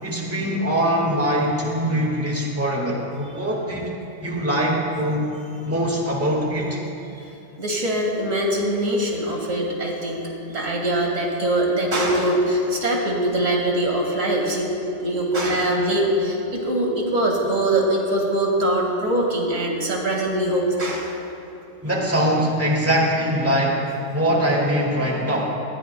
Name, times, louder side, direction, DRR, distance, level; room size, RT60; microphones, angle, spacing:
voice 1, 0.0-3.9 4.2-5.3 5.6-6.8 21.8-25.6, equal, 10° right, -2 dB, 1.7 m, -22 dB
voice 2, 7.6-10.2 10.5-14.7 15.0-21.2, right 1 dB, 65° right, -1 dB, 2.3 m, -22 dB
19.0 x 13.5 x 2.2 m, 2.9 s
omnidirectional pair, 1.4 m